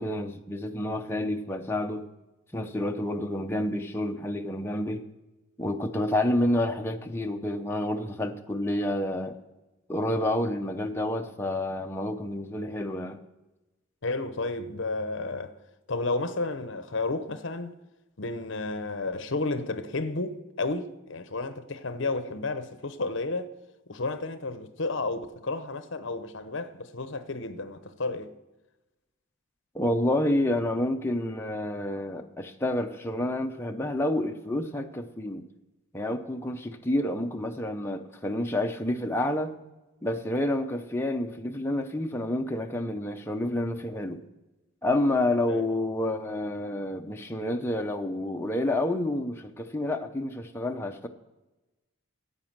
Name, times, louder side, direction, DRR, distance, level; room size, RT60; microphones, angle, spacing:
voice 1, 0.0-2.1 2.5-5.0 5.6-9.4 9.9-13.2 29.7-35.5 35.9-39.5 40.0-44.2 44.8-51.1, left 1 dB, 10° left, 0.7 m, -29 dB
voice 2, 14.0-15.5 15.9-17.7 18.2-23.5 23.9-28.3 45.5-45.8, left 3 dB, 60° left, 0.8 m, -32 dB
9.7 x 8.7 x 7.3 m
head